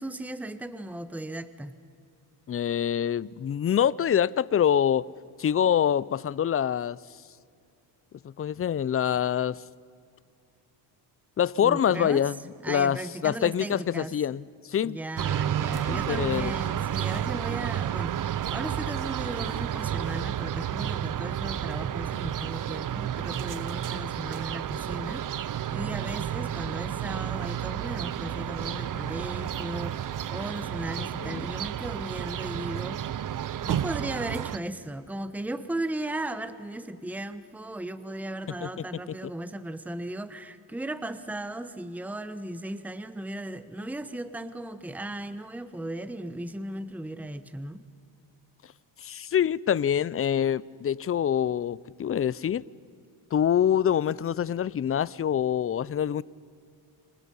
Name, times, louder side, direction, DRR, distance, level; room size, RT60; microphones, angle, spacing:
voice 1, 0.0-1.7 11.6-12.3 12.6-14.1 14.8-33.0 33.6-47.9, right 1 dB, 5° right, 1.0 m, -36 dB
voice 2, 2.5-5.1 5.4-7.0 8.2-9.6 11.4-12.4 12.7-14.4 14.7-15.0 15.9-16.5 31.2-31.5 38.6-38.7 49.0-52.6 53.3-56.2, left 9 dB, 30° left, 0.5 m, -25 dB
sound 1, 15.2-34.6, right 10 dB, 45° right, 0.8 m, -31 dB
29.5 x 26.5 x 5.5 m
cardioid pair, 100°, 46 cm